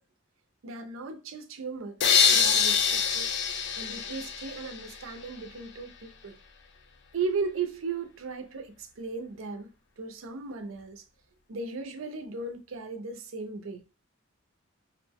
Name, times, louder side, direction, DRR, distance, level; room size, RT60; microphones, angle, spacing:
voice 1, 0.6-2.0 2.3-3.3 3.8-6.4 7.1-9.7 10.0-11.0 11.5-13.8, right 4 dB, 85° right, 0.5 m, -36 dB
sound 1, 2.0-5.0, left 6 dB, 60° left, 0.4 m, -25 dB
2.5 x 2.1 x 3.4 m
head